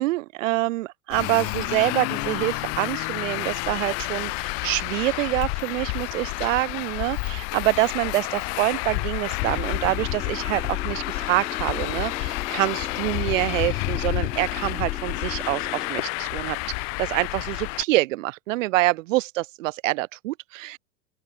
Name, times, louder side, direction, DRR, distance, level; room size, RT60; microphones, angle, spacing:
voice 1, 0.0-20.8, right 19 dB, 50° right, 0.7 m, -26 dB
Traffic noise roadway noise, 1.1-17.8, left 37 dB, 35° left, 0.7 m, -29 dB
sound 1, 9.4-15.9, left 5 dB, 90° left, 1.9 m, -40 dB
open air
figure-of-eight pair, 100°, 50 cm